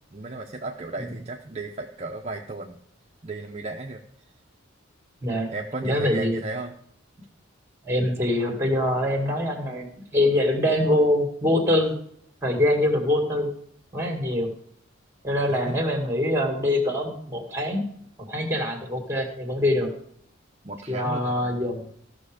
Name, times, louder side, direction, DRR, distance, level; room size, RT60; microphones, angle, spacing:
voice 1, 0.1-2.8 3.2-4.0 5.5-6.7 15.5-15.8 20.6-21.4, right 3 dB, 30° right, 2 dB, 0.6 m, -34 dB
voice 2, 5.8-6.4 7.8-11.9 12.4-13.5 13.9-14.5 15.2-17.9 18.3-19.9 20.9-21.8, left 1 dB, 15° right, 4 dB, 2.1 m, -24 dB
14.5 x 6.3 x 4.9 m, 0.67 s
head